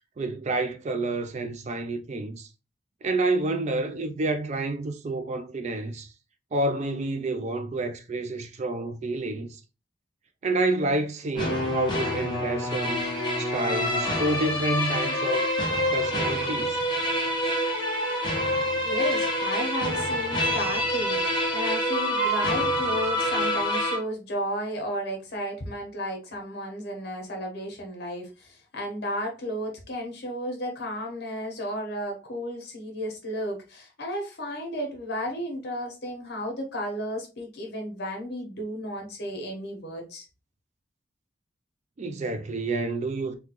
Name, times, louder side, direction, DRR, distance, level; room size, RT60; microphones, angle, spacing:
voice 1, 0.2-2.5 3.0-6.1 6.5-9.6 10.4-13.0 13.4-15.5 15.9-16.8 42.0-43.3, right 2 dB, 40° right, 0.4 m, -29 dB
sound 1, 11.3-24.0, equal, 25° left, 1.0 m, -26 dB
Livestock farm animals working animals, 12.5-15.1 15.5-15.8 16.1-16.2 16.9-17.0 17.2-17.3 17.5-17.6 18.1-18.4 19.0-19.1 19.3-19.4 19.6-19.7 19.9-20.0 20.4-20.5 21.0-21.1 21.6-21.7, left 3 dB, ahead, 1.1 m, -44 dB
voice 2, 18.8-40.2, equal, 60° left, 1.1 m, -33 dB
3.7 x 2.3 x 2.9 m
head